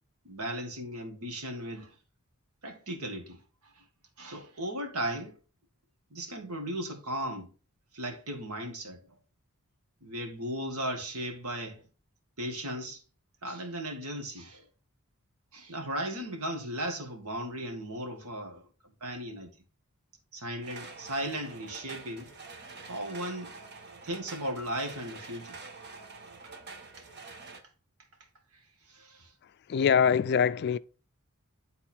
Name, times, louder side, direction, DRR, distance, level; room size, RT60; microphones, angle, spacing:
voice 1, 0.3-1.9 2.6-3.4 4.2-5.3 6.1-7.5 7.9-9.0 10.0-11.8 12.4-13.0 13.4-14.6 15.5-18.6 19.0-19.5 20.3-22.3 22.9-23.5 24.0-25.6 28.9-29.3, right 1 dB, 75° right, 1.9 m, -36 dB
sound 1, 20.6-27.6, right 4 dB, 50° right, 1.2 m, -47 dB
voice 2, 29.7-30.8, left 7 dB, 50° left, 0.4 m, -23 dB
10.5 x 4.0 x 4.4 m
head